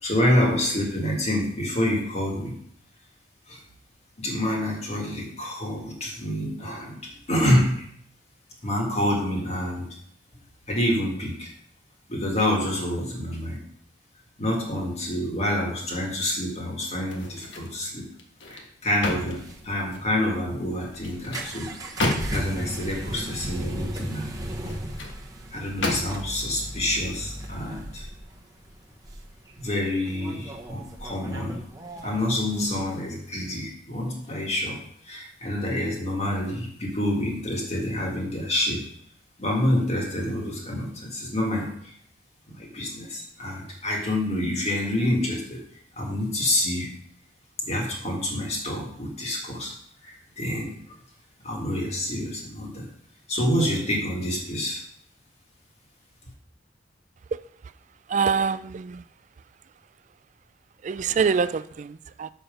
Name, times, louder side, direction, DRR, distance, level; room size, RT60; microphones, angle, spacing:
voice 1, 0.0-2.5 3.5-3.6 4.2-7.9 8.6-10.0 10.7-11.5 12.1-13.6 14.4-18.1 18.5-21.7 22.0-24.4 25.5-28.1 29.6-31.6 32.0-38.8 39.4-41.9 42.5-45.6 46.0-46.9 47.6-49.7 50.0-50.7 51.4-52.9 53.3-54.8, left 1 dB, 35° left, -1 dB, 2.0 m, -27 dB
sound 1, 17.0-17.8 18.2-20.2 20.9-22.6 24.4-25.2 25.8-26.4 26.9-27.1, left 2 dB, 75° left, 1.3 m, -32 dB
sound 2, 19.3-32.9, right 1 dB, 20° right, 0.9 m, -37 dB
voice 2, 58.1-59.0 60.8-62.3, right 5 dB, 40° right, 15 dB, 0.3 m, -25 dB
6.8 x 5.7 x 5.2 m, 0.65 s
head